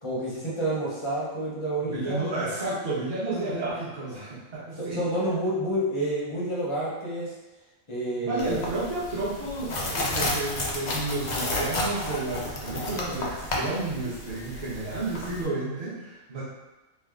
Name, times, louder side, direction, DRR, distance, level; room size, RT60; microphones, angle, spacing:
voice 1, 0.0-2.2 4.8-7.3 7.9-8.6, right 1 dB, 30° left, -7 dB, 0.6 m, -29 dB
voice 2, 1.8-5.1 8.2-16.4, right 2 dB, 40° right, -9 dB, 0.8 m, -31 dB
sound 1, 8.4-15.4, left 1 dB, 80° left, 0.4 m, -32 dB
3.2 x 2.0 x 3.5 m, 1.1 s
omnidirectional pair, 1.5 m